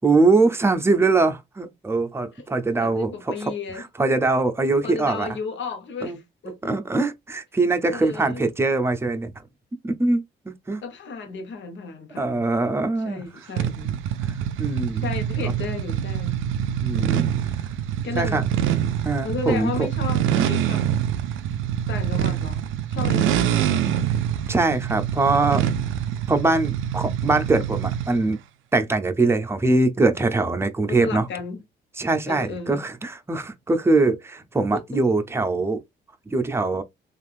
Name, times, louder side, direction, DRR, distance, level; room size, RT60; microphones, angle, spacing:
voice 1, 0.0-3.1 3.8-5.3 6.0-6.2 6.6-9.3 9.8-10.8 12.2-13.2 14.2-15.0 15.4-15.5 16.8-17.3 18.1-18.4 19.0-19.9 24.5-25.6 26.3-28.4 28.7-31.3 32.0-35.8 36.3-36.8, right 3 dB, 10° right, 0.6 m, -22 dB
voice 2, 2.8-3.9 4.8-6.7 7.9-8.4 10.8-12.5 13.0-14.0 14.9-16.4 17.0-17.5 18.0-18.5 19.2-20.9 21.9-22.6 22.9-24.1 30.8-31.6 32.2-32.8 34.7-35.0, left 4 dB, 70° left, 1.0 m, -34 dB
sound 1, 13.6-28.2, right 10 dB, 85° right, 0.4 m, -25 dB
3.4 x 2.5 x 2.4 m
cardioid pair, 90°, 20 cm